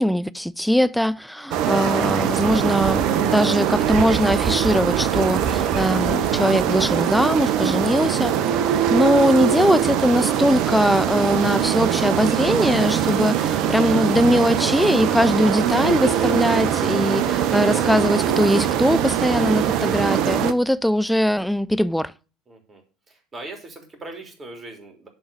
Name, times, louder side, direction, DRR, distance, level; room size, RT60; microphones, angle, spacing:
voice 1, 0.0-8.3 8.9-22.1, equal, ahead, 0.5 m, -21 dB
sound 1, 1.5-20.5, right 9 dB, 55° right, 0.7 m, -22 dB
voice 2, 22.5-22.8 23.1-25.1, right 2 dB, 25° right, 3.2 m, -40 dB
10.5 x 3.9 x 6.8 m
figure-of-eight pair, 70°, 0 cm